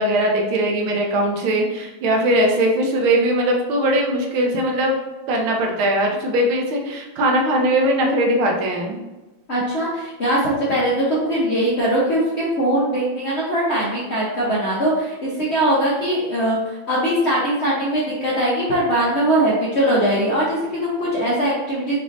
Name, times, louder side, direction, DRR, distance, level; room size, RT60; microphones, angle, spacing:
voice 1, 0.0-4.9 5.3-9.0, right 1 dB, 80° right, 1 dB, 1.6 m, -20 dB
voice 2, 9.5-22.0, right 1 dB, 50° left, -7 dB, 0.8 m, -21 dB
6.0 x 2.8 x 2.5 m, 1.1 s
omnidirectional pair, 2.3 m